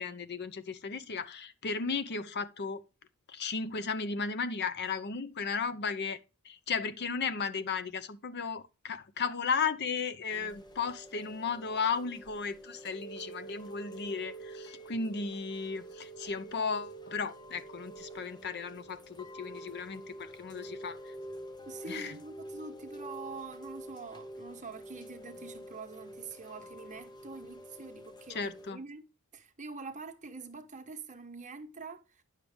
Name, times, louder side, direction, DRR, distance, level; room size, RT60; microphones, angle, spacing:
voice 1, 0.0-2.8 3.3-6.2 6.4-21.1 21.9-22.2 28.3-28.8, left 5 dB, 50° left, 0.7 m, -35 dB
Chime / Rain, 10.3-28.7, right 1 dB, 20° left, 0.8 m, -47 dB
voice 2, 21.7-29.0 29.3-32.2, right 4 dB, 35° right, 1.1 m, -45 dB
10.0 x 6.6 x 3.4 m
head